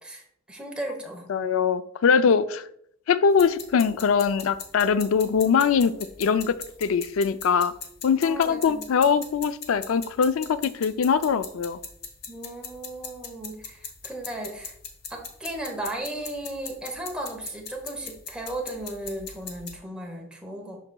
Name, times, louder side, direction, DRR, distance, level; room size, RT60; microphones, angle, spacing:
voice 1, 0.0-1.3 2.2-2.3 8.1-8.9 12.3-14.7 15.1-20.8, right 1 dB, 5° right, 0 dB, 0.9 m, -36 dB
voice 2, 1.3-2.6 3.1-5.9 6.2-6.5 6.8-7.7 8.0-11.8, left 6 dB, 80° left, 13 dB, 0.4 m, -22 dB
sound 1, 3.3-19.7, left 6 dB, 50° left, 0.9 m, -41 dB
11.5 x 3.9 x 2.3 m, 0.69 s
head